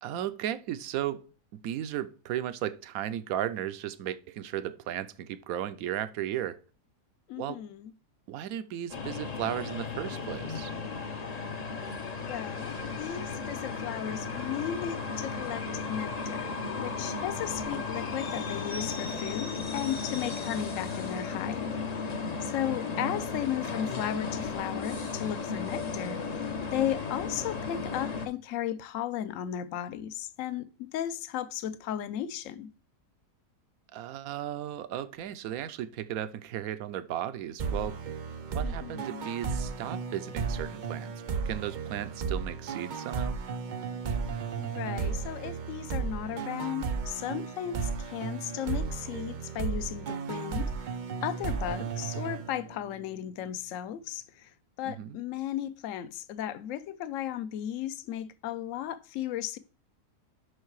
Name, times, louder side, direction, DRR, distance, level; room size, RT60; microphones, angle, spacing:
voice 1, 0.0-1.2 1.6-6.6 7.4-7.6 8.3-10.7 23.0-23.2 33.9-38.0 38.5-41.1 41.5-43.3 54.8-55.2, right 11 dB, 70° right, 1.0 m, -35 dB
voice 2, 7.3-7.9 12.2-21.7 22.4-26.2 26.7-32.7 38.6-39.3 44.6-50.9 51.2-54.5 54.8-59.6, left 11 dB, 65° left, 0.9 m, -35 dB
sound 1, 8.9-28.3, left 4 dB, 40° left, 0.6 m, -35 dB
sound 2, 37.6-53.0, right 5 dB, 90° right, 0.4 m, -34 dB
6.5 x 5.6 x 4.6 m
omnidirectional pair, 1.7 m